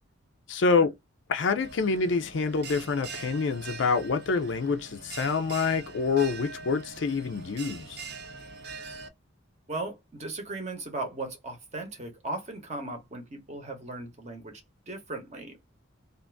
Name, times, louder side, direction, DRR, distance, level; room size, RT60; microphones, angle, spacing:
voice 1, 0.5-0.9 1.3-8.0, left 4 dB, 65° left, 0.4 m, -26 dB
Bell, 1.6-9.1, right 4 dB, 55° right, 0.6 m, -43 dB
voice 2, 9.7-15.7, right 2 dB, 35° right, 0.9 m, -37 dB
2.5 x 2.5 x 3.3 m
head